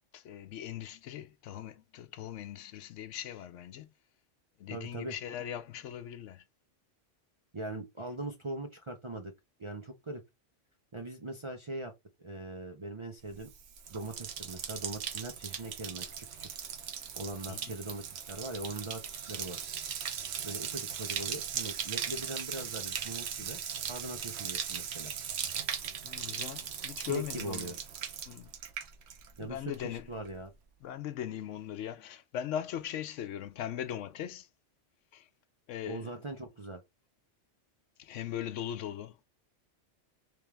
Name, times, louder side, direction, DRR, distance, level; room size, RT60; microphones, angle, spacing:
voice 1, 0.1-3.9 4.6-6.4 17.5-17.7 26.0-27.7 28.3-28.5 29.4-30.1 30.8-34.5 35.1-35.3 35.7-36.1 38.0-39.2, left 10 dB, 85° left, 0.9 m, -39 dB
voice 2, 4.7-5.2 7.5-9.3 9.6-10.2 10.9-11.9 12.2-13.5 13.9-16.5 17.2-19.0 19.3-19.7 20.4-25.1 27.1-27.8 29.4-30.5 35.9-36.8, right 2 dB, 40° right, 0.4 m, -41 dB
Bathtub (filling or washing), 13.4-29.5 29.7-30.3, right 8 dB, 65° right, 0.9 m, -38 dB
3.4 x 3.4 x 3.2 m
omnidirectional pair, 1.2 m